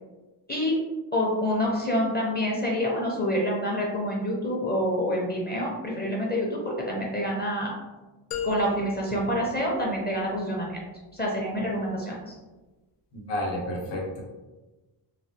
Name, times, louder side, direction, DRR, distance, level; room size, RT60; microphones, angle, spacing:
voice 1, 1.1-7.7 8.4-10.8 11.1-12.4, equal, 20° left, -3 dB, 0.6 m, -27 dB
sound 1, 8.3-10.4, left 8 dB, 90° left, 0.6 m, -36 dB
voice 2, 13.1-14.2, left 1 dB, 60° left, -1 dB, 0.9 m, -31 dB
3.2 x 2.2 x 2.7 m, 1.1 s
wide cardioid pair, 105°, 50 cm